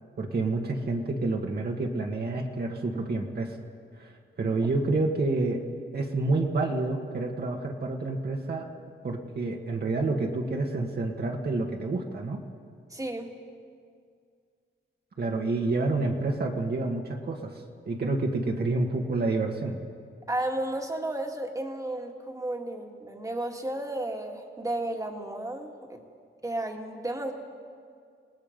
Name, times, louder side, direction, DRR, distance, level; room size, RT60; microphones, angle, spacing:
voice 1, 0.2-3.6 4.0-5.6 5.9-8.7 9.0-12.4 15.2-19.8, right 2 dB, 50° right, 1 dB, 1.6 m, -28 dB
voice 2, 12.9-13.3 20.3-26.0 26.4-27.3, right 1 dB, 15° right, 3 dB, 1.9 m, -33 dB
28.5 x 19.0 x 5.2 m, 2.2 s
wide cardioid pair, 130°, 21 cm